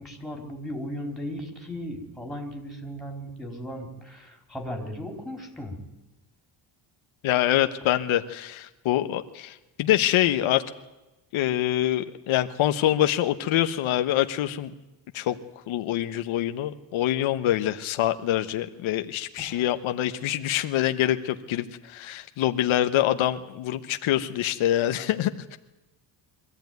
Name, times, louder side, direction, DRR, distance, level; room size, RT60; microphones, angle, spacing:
voice 1, 0.0-5.8 19.4-19.7, equal, ahead, 2 dB, 4.4 m, -36 dB
voice 2, 7.2-10.6 11.3-14.7 15.1-15.4 15.7-25.6, left 13 dB, 80° left, 8 dB, 1.2 m, -25 dB
23.5 x 15.0 x 9.4 m, 1.0 s
cardioid pair, 135°, 47 cm